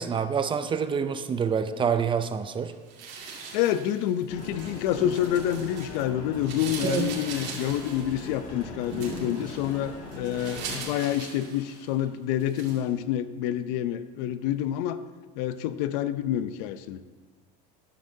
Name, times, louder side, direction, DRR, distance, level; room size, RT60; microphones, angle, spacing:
voice 1, 0.0-2.7 6.8-7.1, right 6 dB, 25° right, 10 dB, 0.6 m, -27 dB
sound 1, 2.9-6.0 6.3-12.0 12.4-12.8, right 5 dB, 55° right, 2.5 m, -40 dB
voice 2, 3.5-15.0 15.4-17.0, left 11 dB, 75° left, 13 dB, 0.6 m, -28 dB
sound 2, 4.3-10.8, left 2 dB, 35° left, 2.0 m, -41 dB
13.5 x 9.8 x 2.8 m, 1.3 s
supercardioid pair, 120°, 21 cm